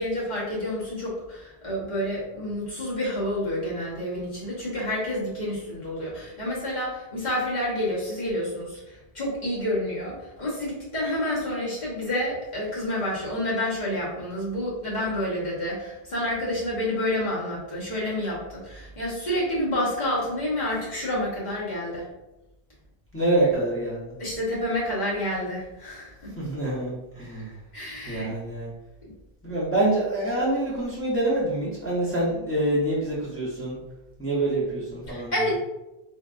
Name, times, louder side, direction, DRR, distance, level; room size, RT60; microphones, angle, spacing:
voice 1, 0.0-22.1 24.2-26.4 27.7-28.3 29.0-29.1 35.1-35.6, left 1 dB, 45° left, -6 dB, 1.1 m, -29 dB
voice 2, 23.1-24.2 26.4-27.6 28.0-28.7 29.4-33.8 34.2-35.3, right 1 dB, 15° left, -8 dB, 0.6 m, -26 dB
3.2 x 2.3 x 2.4 m, 0.97 s
omnidirectional pair, 1.0 m